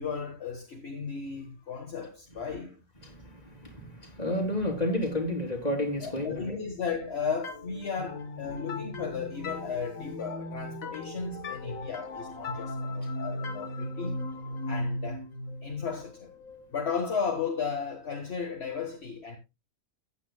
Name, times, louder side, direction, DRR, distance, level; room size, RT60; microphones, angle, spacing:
voice 1, 0.0-2.8 6.0-14.3 14.7-15.2 15.6-16.3 16.7-19.4, left 5 dB, 50° left, 1.8 m, -35 dB
voice 2, 4.0-6.6, left 1 dB, 30° left, 3.2 m, -30 dB
sound 1, 7.4-17.0, left 2 dB, 75° left, 1.8 m, -37 dB
15.0 x 9.3 x 2.2 m
omnidirectional pair, 1.4 m